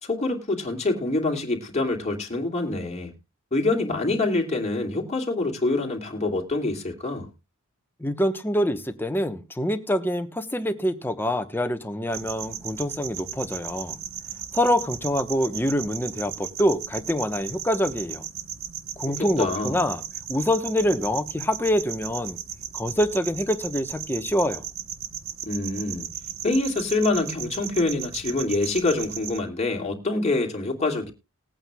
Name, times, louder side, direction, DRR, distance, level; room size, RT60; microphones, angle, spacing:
voice 1, 0.0-3.2 3.5-7.3 19.0-19.8 25.4-26.1 26.4-31.1, left 2 dB, 30° left, 2.6 m, -26 dB
voice 2, 8.0-14.0 14.5-18.2 19.0-20.0 20.3-22.4 22.7-24.6, equal, 10° left, 1.1 m, -25 dB
sound 1, 12.1-29.4, right 9 dB, 80° right, 1.1 m, -36 dB
20.5 x 8.9 x 2.3 m
head